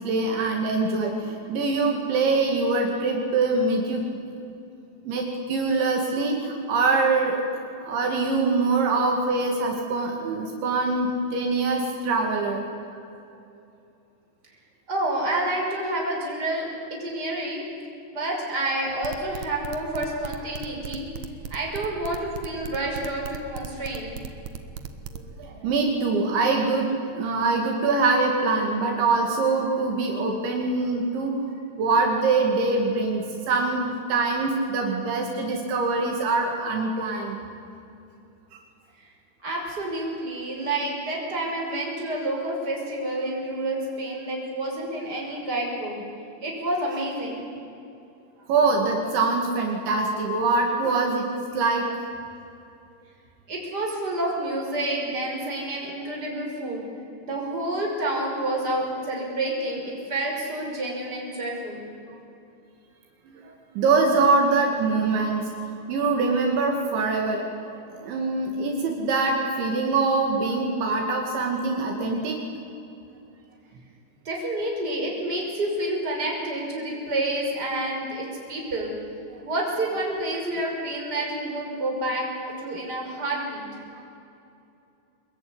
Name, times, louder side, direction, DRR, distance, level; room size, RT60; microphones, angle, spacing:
voice 1, 0.0-4.0 5.1-7.4 7.9-12.6 25.1-31.4 31.8-37.4 48.5-51.3 51.5-51.9 63.3-65.5 65.9-72.4 77.9-78.0 79.3-79.4 84.0-84.1, right 3 dB, 70° right, 1 dB, 4.5 m, -24 dB
voice 2, 14.9-17.6 18.1-21.1 21.5-24.1 28.6-28.7 39.0-39.1 39.4-46.0 46.4-47.5 53.5-56.8 57.2-61.8 74.2-78.9 79.4-83.8, right 1 dB, 20° right, -1 dB, 6.1 m, -29 dB
sound 1, 18.9-25.2, right 8 dB, 90° right, 1.6 m, -36 dB
24.5 x 22.0 x 9.8 m, 2.7 s
omnidirectional pair, 5.6 m